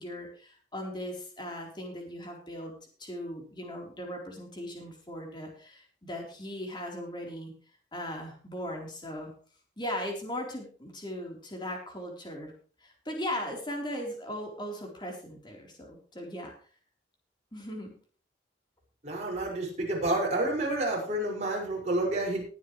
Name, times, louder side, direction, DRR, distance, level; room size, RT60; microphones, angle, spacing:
voice 1, 0.0-7.5 7.9-9.3 9.8-12.5 12.8-16.5 17.5-17.9, equal, 25° left, 0 dB, 4.1 m, -38 dB
voice 2, 19.0-22.4, right 1 dB, 40° right, -3 dB, 6.0 m, -29 dB
20.0 x 9.4 x 3.3 m, 0.41 s
head